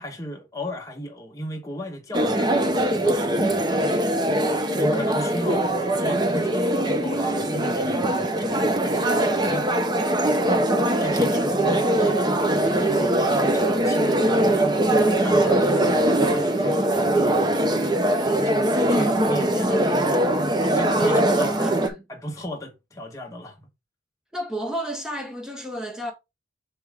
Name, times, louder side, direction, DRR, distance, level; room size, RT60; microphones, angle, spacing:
voice 1, 0.0-3.5 4.8-5.7 6.0-7.9 8.4-9.8 10.4-14.7 15.0-17.5 17.7-21.8 22.1-23.7, equal, 15° left, 1.2 m, -36 dB
sound 1, 2.1-21.9, right 1 dB, 20° right, 0.7 m, -21 dB
voice 2, 21.0-22.0 24.3-26.1, equal, 5° right, 1.5 m, -32 dB
6.2 x 4.8 x 3.5 m
head